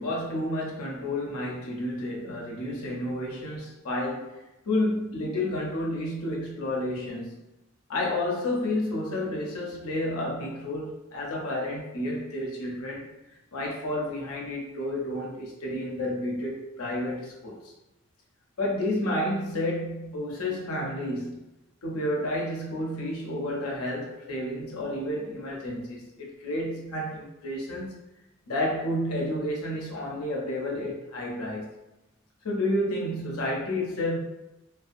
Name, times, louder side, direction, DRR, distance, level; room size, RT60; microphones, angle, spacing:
voice 1, 0.0-4.4 4.7-7.4 7.9-13.1 13.5-17.6 18.6-21.4 21.8-27.9 28.5-31.7 32.4-34.2, left 1 dB, 85° left, -2 dB, 0.7 m, -30 dB
2.5 x 2.3 x 2.5 m, 0.98 s
head